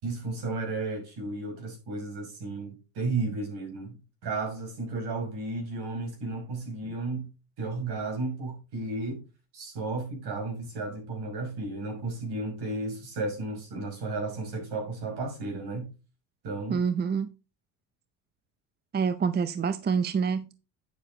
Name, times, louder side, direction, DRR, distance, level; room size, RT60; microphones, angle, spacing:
voice 1, 0.0-7.3 7.6-9.2 9.5-15.9 16.4-16.8, right 3 dB, 60° right, 5.9 m, -33 dB
voice 2, 16.7-17.3 18.9-20.6, right 6 dB, 25° right, 0.6 m, -27 dB
9.5 x 6.7 x 3.8 m
supercardioid pair, 90°, 44 cm